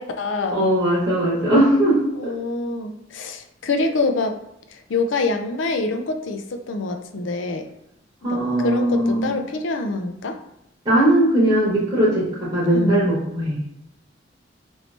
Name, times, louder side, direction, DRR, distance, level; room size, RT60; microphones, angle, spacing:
voice 1, 0.0-0.7 2.2-4.4 4.7-7.7 8.2-10.4 12.6-13.0, left 3 dB, 75° left, 6 dB, 0.4 m, -26 dB
voice 2, 0.5-2.3 8.2-9.3 10.8-13.6, right 1 dB, 25° right, -9 dB, 1.0 m, -19 dB
3.0 x 2.7 x 3.2 m, 0.82 s
head